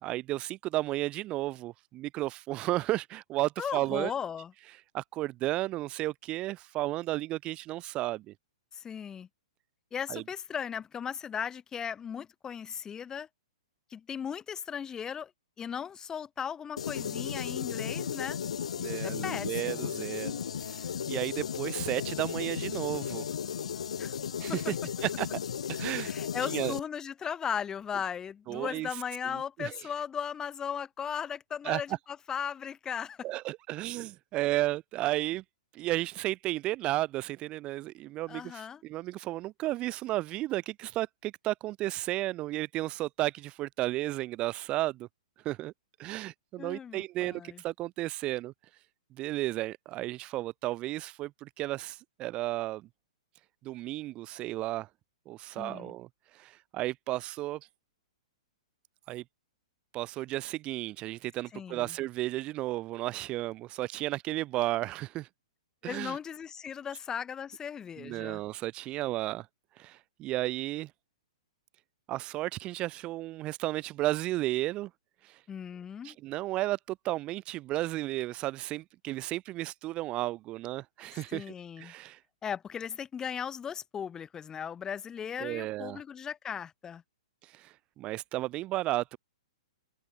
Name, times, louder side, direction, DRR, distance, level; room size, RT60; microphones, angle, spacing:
voice 1, 0.0-4.1 4.9-8.3 10.1-10.2 18.8-23.2 24.4-24.8 25.0-25.3 25.7-26.1 26.4-26.8 28.5-29.0 29.3-29.8 31.6-31.8 33.2-35.4 35.7-45.1 45.4-45.7 46.0-48.5 49.2-52.9 53.6-54.9 55.3-56.1 56.3-57.6 59.1-59.2 59.9-65.3 65.8-66.2 68.0-69.5 69.8-70.9 72.1-74.9 75.2-75.4 76.0-81.5 81.8-82.2 85.4-86.0 87.4-89.2, right 16 dB, 30° right, 1.3 m, -33 dB
voice 2, 3.6-4.5 8.7-9.3 9.9-13.3 13.9-15.3 15.6-18.4 19.0-19.9 24.0-24.1 24.5-24.6 26.0-32.0 32.3-33.2 38.3-38.8 46.6-47.6 55.6-55.9 61.5-61.9 65.8-68.4 75.5-76.2 81.3-81.9 82.4-87.0, left 7 dB, 20° left, 2.3 m, -37 dB
sound 1, 16.8-26.8, left 8 dB, 75° left, 1.2 m, -35 dB
open air
hypercardioid pair, 120°, 3 cm